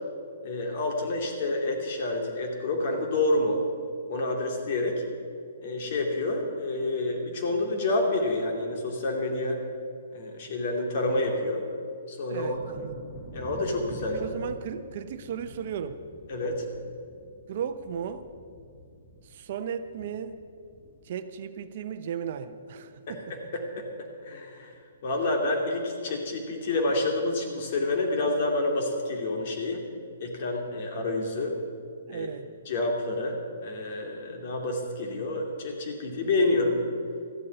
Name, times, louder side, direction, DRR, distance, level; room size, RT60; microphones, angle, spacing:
voice 1, 0.4-3.6 4.1-5.0 5.6-9.6 10.1-11.6 12.1-12.6 13.3-14.2 16.3-16.6 23.1-23.9 24.2-24.7 25.0-29.8 30.2-31.5 32.1-32.3 32.7-36.9, left 2 dB, 50° left, 2 dB, 2.7 m, -28 dB
voice 2, 12.3-13.1 14.1-16.0 17.5-18.3 19.3-20.4 21.1-23.2 32.1-32.5, right 8 dB, 50° right, 10 dB, 0.8 m, -35 dB
Thunder, 12.5-22.0 22.2-22.9 23.3-23.4 23.8-24.0, equal, 15° left, 2.4 m, -47 dB
14.0 x 8.5 x 8.0 m, 2.3 s
hypercardioid pair, 140°, 0 cm